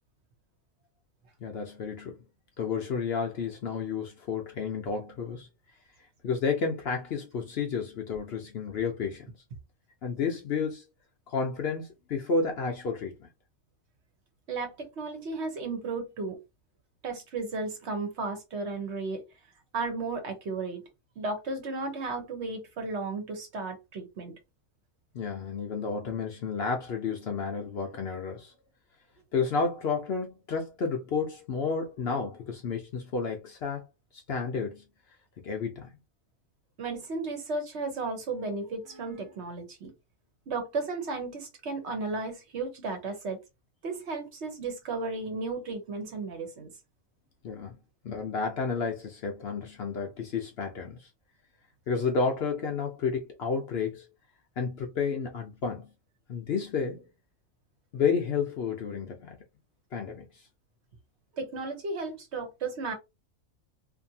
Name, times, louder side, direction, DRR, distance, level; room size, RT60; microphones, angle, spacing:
voice 1, 1.4-2.2 2.6-5.5 6.2-9.3 10.0-10.8 11.3-13.3 25.1-28.5 29.3-33.8 34.1-34.8 35.4-35.9 47.4-47.7 48.0-51.1 51.9-54.1 54.6-55.9 56.3-57.1 57.9-59.4 59.9-60.4, left 5 dB, 60° left, 0.7 m, -31 dB
voice 2, 14.5-16.4 17.0-19.2 19.7-20.8 21.2-24.3 36.8-39.9 40.5-43.4 43.8-46.7 61.4-62.9, right 3 dB, 60° right, 1.0 m, -34 dB
2.6 x 2.5 x 2.7 m
omnidirectional pair, 1.4 m